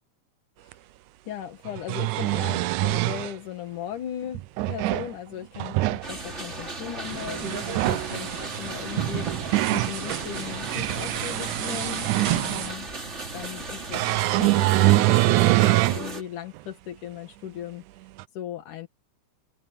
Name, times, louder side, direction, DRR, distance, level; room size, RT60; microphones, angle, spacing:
sound 1, 0.7-0.8 1.7-3.3 4.3-5.1 5.5-6.0 7.6-8.1 9.0-10.0 10.5-12.7 13.9-16.0 16.6-16.7 18.2-18.3, right 19 dB, 80° right, 2.1 m, -23 dB
voice 1, 1.3-12.9 13.3-14.0 14.4-17.8 18.3-18.9, left 11 dB, 75° left, 3.0 m, -37 dB
sound 2, 6.0-16.2, right 2 dB, 20° right, 2.9 m, -36 dB
sound 3, 7.0-12.7, right 10 dB, 55° right, 2.0 m, -33 dB
omnidirectional pair, 3.6 m